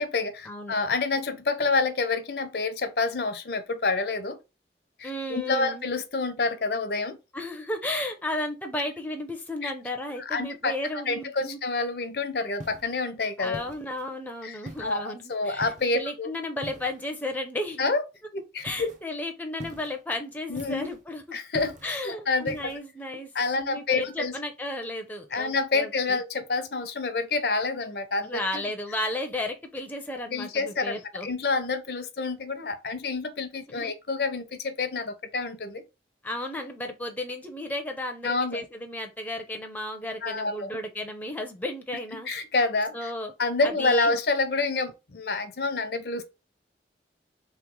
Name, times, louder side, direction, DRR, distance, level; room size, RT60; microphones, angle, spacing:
voice 1, 0.0-4.4 5.0-7.2 9.6-9.7 10.2-10.7 11.1-13.6 14.4-16.3 17.8-18.0 18.3-18.9 20.5-20.9 21.3-22.7 23.3-24.3 25.3-28.6 30.3-35.8 38.2-38.6 40.2-40.8 42.3-43.1 43.4-46.2, left 3 dB, 65° left, 0.6 m, -28 dB
voice 2, 5.0-5.9 7.3-11.6 13.4-17.8 18.6-21.2 21.8-23.3 23.6-26.2 28.2-31.3 33.7-33.9 36.2-42.3 42.9-43.3 43.6-44.1, left 1 dB, 10° left, 0.5 m, -34 dB
sound 1, 12.6-13.0 13.5-14.1 14.7-15.0 15.6-16.0 16.6-17.1 18.7-19.0 19.6-20.0 20.6-21.0 21.5-22.0 22.5-22.8, equal, 45° right, 0.7 m, -43 dB
3.2 x 3.1 x 3.6 m
head